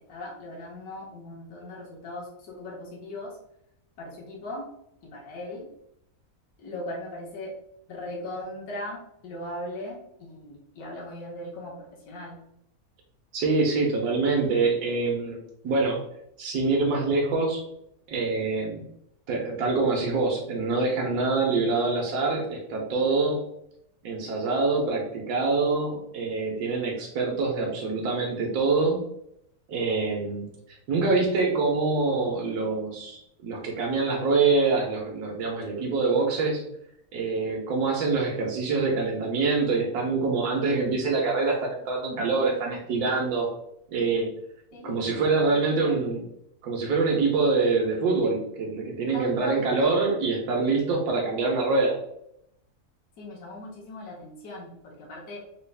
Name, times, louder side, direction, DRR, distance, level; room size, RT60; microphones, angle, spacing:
voice 1, 0.1-3.4 4.0-4.7 5.0-5.7 6.6-7.5 7.9-12.4 44.7-46.0 49.1-49.7 53.2-55.4, left 1 dB, 75° left, -3 dB, 1.4 m, -39 dB
voice 2, 13.3-15.4 15.6-16.0 16.4-17.6 18.1-18.9 19.3-23.4 24.0-29.0 29.7-36.6 37.1-43.5 43.9-44.3 44.8-46.2 46.6-52.0, right 3 dB, 85° right, -1 dB, 1.3 m, -25 dB
3.9 x 2.3 x 3.3 m, 0.75 s
omnidirectional pair, 1.6 m